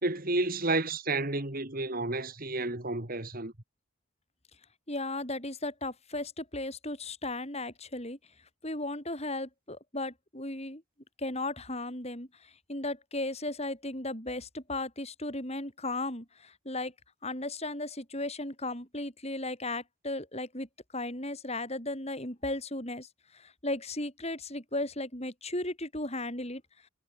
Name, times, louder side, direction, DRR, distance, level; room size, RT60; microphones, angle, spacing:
voice 1, 0.0-3.5, right 2 dB, 40° right, 2.4 m, -31 dB
voice 2, 4.9-8.2 8.6-10.8 11.2-16.9 17.2-20.7 20.9-26.6, left 2 dB, 30° left, 6.9 m, -36 dB
head